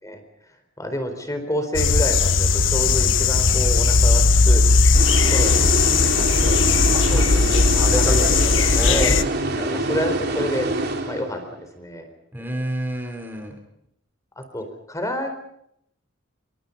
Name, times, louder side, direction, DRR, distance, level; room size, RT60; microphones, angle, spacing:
voice 1, 0.8-4.6 5.3-5.8 6.2-6.6 7.2-7.4 7.7-9.2 9.6-10.7 11.1-11.4 11.8-12.1 14.4-15.3, equal, 15° left, 7 dB, 4.2 m, -29 dB
sound 1, 1.7-9.2, left 4 dB, 70° left, 1.3 m, -17 dB
sound 2, 4.9-11.6, right 2 dB, 55° right, 3.9 m, -26 dB
voice 2, 6.9-9.1 12.3-13.6, equal, 10° right, 5 dB, 3.7 m, -29 dB
27.5 x 25.0 x 5.4 m, 0.74 s
head